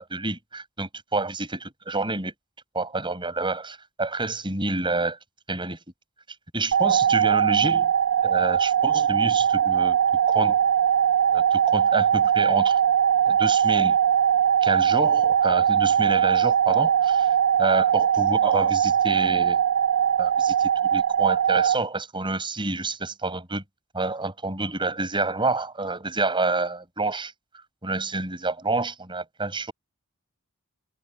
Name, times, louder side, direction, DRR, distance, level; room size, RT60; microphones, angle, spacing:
voice 1, 0.0-2.3 2.7-5.2 5.5-5.8 6.5-7.9 8.2-10.0 10.3-10.6 11.3-12.8 13.3-14.0 14.6-17.3 17.6-19.6 20.2-23.6 23.9-27.3 27.8-29.7, right 3 dB, 20° right, 7.2 m, -28 dB
sound 1, 6.7-21.7, right 9 dB, 70° right, 0.6 m, -21 dB
head